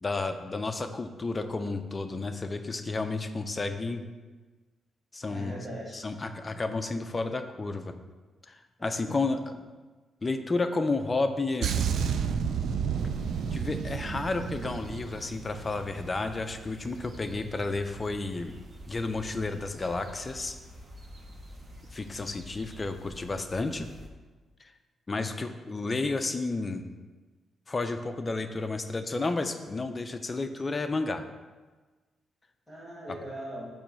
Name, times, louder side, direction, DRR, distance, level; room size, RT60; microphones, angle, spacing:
voice 1, 0.0-4.0 5.1-5.7 5.9-8.0 8.5-9.6 10.2-11.8 13.5-18.6 18.9-20.6 21.9-23.9 24.6-24.7 25.1-26.8 27.7-31.2, left 3 dB, 20° left, 8 dB, 0.4 m, -31 dB
voice 2, 5.3-6.0 8.8-9.0 32.7-33.7, right 1 dB, ahead, -6 dB, 1.9 m, -40 dB
sound 1, 11.6-16.2 16.4-16.7, right 7 dB, 60° right, 0.3 m, -31 dB
sound 2, 13.0-24.1, equal, 25° right, 0.8 m, -48 dB
8.4 x 3.1 x 6.0 m, 1.3 s
wide cardioid pair, 180°, 0 cm